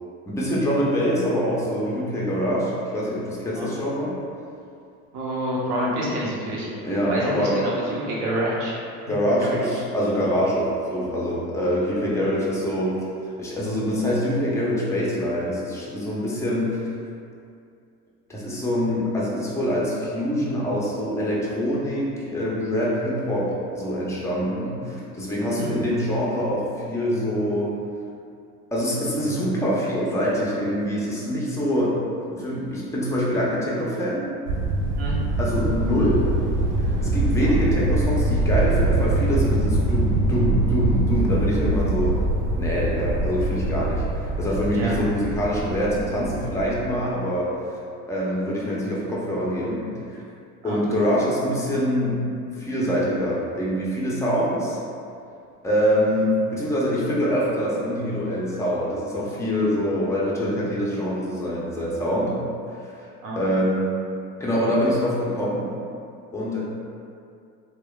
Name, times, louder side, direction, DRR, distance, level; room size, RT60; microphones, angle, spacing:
voice 1, 0.3-4.2 6.8-7.6 9.1-13.0 13.4-16.9 18.3-27.7 28.7-32.0 32.3-34.3 35.4-36.3 36.8-42.1 42.6-47.5 48.1-50.2 50.6-52.2 52.5-54.8 55.6-62.3 63.4-63.9 64.4-65.7 66.3-66.6, equal, 5° left, -6 dB, 0.4 m, -24 dB
voice 2, 5.1-8.8 9.4-9.6 25.4-25.7 35.0-35.2 37.4-37.6 44.7-45.0 50.6-50.8 63.2-63.4, right 1 dB, 60° right, -5 dB, 0.9 m, -28 dB
sound 1, 34.5-46.9, right 2 dB, 80° right, 0.5 m, -24 dB
2.9 x 2.1 x 2.2 m, 2.4 s
hypercardioid pair, 85°, 46 cm